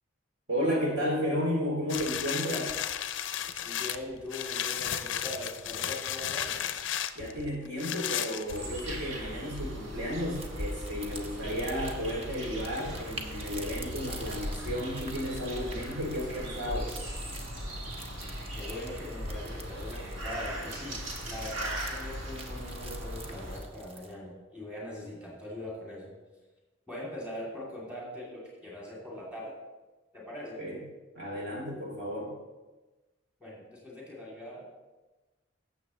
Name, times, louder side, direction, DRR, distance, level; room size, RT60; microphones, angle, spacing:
voice 1, 0.5-2.7 7.1-16.9 30.6-30.8 31.1-32.3, equal, 55° right, -3 dB, 2.6 m, -33 dB
sound 1, 1.9-9.0 9.6-9.7, left 10 dB, 60° left, 0.5 m, -34 dB
voice 2, 3.6-6.7 18.5-26.1 26.9-29.5 30.1-30.6 33.4-34.7, left 1 dB, 5° right, -6 dB, 2.7 m, -41 dB
sound 2, 8.5-23.6, equal, 80° right, 1.9 m, -38 dB
sound 3, 10.3-24.1, right 2 dB, 30° right, 0.9 m, -48 dB
15.5 x 7.0 x 3.1 m, 1.2 s
head